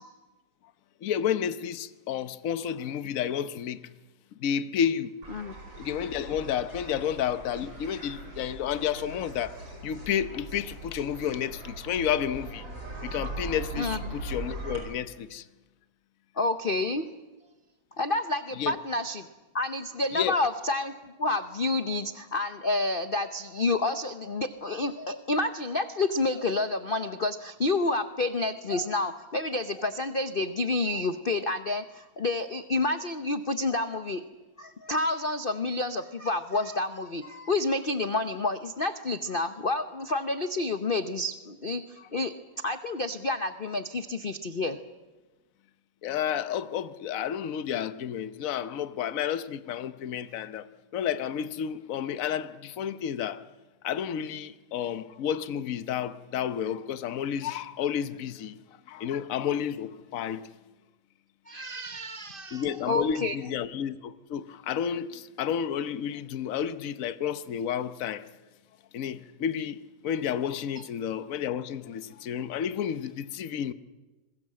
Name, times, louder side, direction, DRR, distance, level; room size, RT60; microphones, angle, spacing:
voice 1, 1.0-3.8 4.4-5.1 5.8-9.6 9.8-12.7 13.0-15.4 18.6-18.8 20.1-20.3 46.0-50.7 50.9-53.4 53.8-58.5 58.9-60.4 62.5-68.3 68.9-73.7, left 9 dB, 55° left, 0.9 m, -31 dB
sound 1, 5.2-14.8, right 2 dB, 55° right, 5.9 m, -40 dB
voice 2, 16.4-17.0 18.0-19.3 19.5-34.2 34.6-44.8 61.5-63.4 70.8-70.9, left 2 dB, 85° left, 0.4 m, -29 dB
26.0 x 21.5 x 7.6 m
omnidirectional pair, 2.4 m